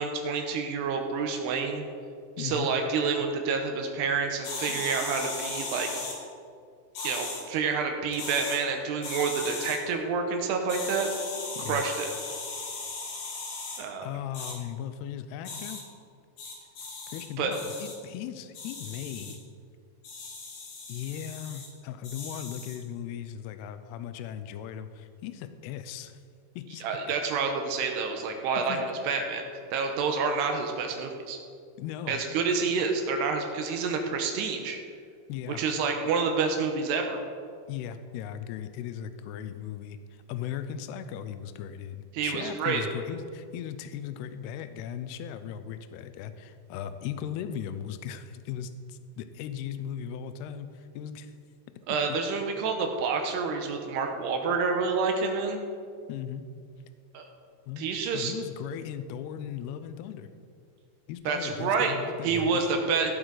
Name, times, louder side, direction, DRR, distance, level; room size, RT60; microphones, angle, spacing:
voice 1, 0.0-1.8 2.4-5.9 7.0-11.1 11.7-12.1 13.8-14.1 17.4-17.5 26.8-31.4 32.1-34.8 35.5-37.2 42.1-42.8 51.9-55.6 57.1-57.3 57.8-58.3 61.3-61.9 62.2-63.1, right 5 dB, 75° right, 4 dB, 2.7 m, -28 dB
voice 2, 2.4-2.7 11.6-11.8 14.0-15.8 17.1-19.4 20.9-26.2 26.6-27.1 28.6-28.8 31.8-32.2 35.3-35.6 37.7-51.3 51.9-52.2 56.1-56.4 57.7-60.3 61.1-62.6, left 9 dB, 85° left, 10 dB, 2.3 m, -37 dB
sound 1, 4.4-6.2 7.0-7.4 8.1-8.6 9.0-9.8 10.7-13.8 14.3-14.5 15.5-15.8 16.4-17.2 17.5-17.9 18.6-19.3 20.0-21.7 22.0-22.8, left 3 dB, 55° left, 3.5 m, -37 dB
17.0 x 7.9 x 4.0 m, 2.2 s
omnidirectional pair, 5.3 m